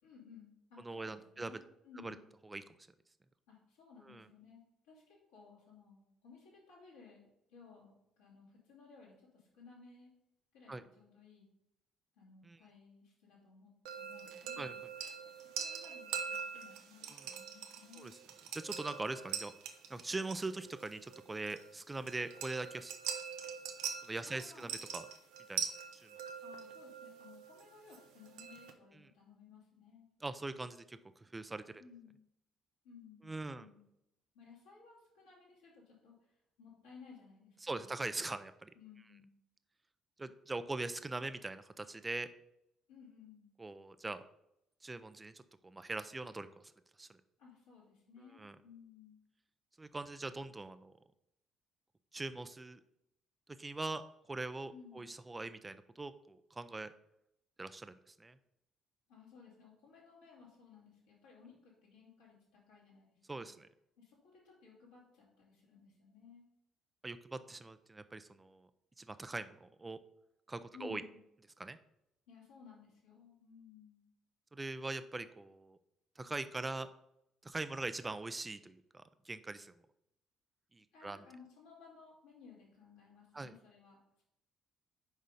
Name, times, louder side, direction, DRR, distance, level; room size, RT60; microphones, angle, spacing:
voice 1, 0.0-2.3 3.5-10.1 10.5-11.5 12.1-14.8 15.5-18.1 24.2-24.8 26.4-30.0 31.8-32.2 32.8-33.8 34.3-37.9 38.7-39.3 42.9-43.5 47.4-49.2 54.7-55.1 59.1-63.5 64.0-66.5 70.7-71.2 72.3-74.0 80.9-84.0, left 5 dB, 80° left, -7 dB, 3.2 m, -58 dB
voice 2, 0.8-1.5 2.0-2.1 2.4-2.6 4.1-4.2 10.7-10.8 12.4-12.6 14.6-14.7 17.1-17.3 18.0-18.1 18.5-19.5 19.9-22.9 24.0-25.1 25.5-25.6 26.0-26.1 29.0-29.1 30.2-31.8 33.2-33.7 37.6-38.7 40.2-42.3 43.6-44.2 44.8-45.3 45.6-46.5 47.0-47.2 48.4-48.6 49.8-50.9 52.1-52.8 53.6-54.0 54.3-56.9 57.6-58.4 63.3-63.7 67.0-68.7 69.0-70.0 70.5-71.0 71.6-71.8 74.5-75.8 76.2-76.9 77.4-79.7 80.7-81.2 83.3-83.5, right 2 dB, 20° right, 12 dB, 0.5 m, -42 dB
sound 1, 13.9-28.7, right 7 dB, 70° right, 0.7 m, -44 dB
6.3 x 5.1 x 5.4 m, 0.82 s
hypercardioid pair, 50°, 0 cm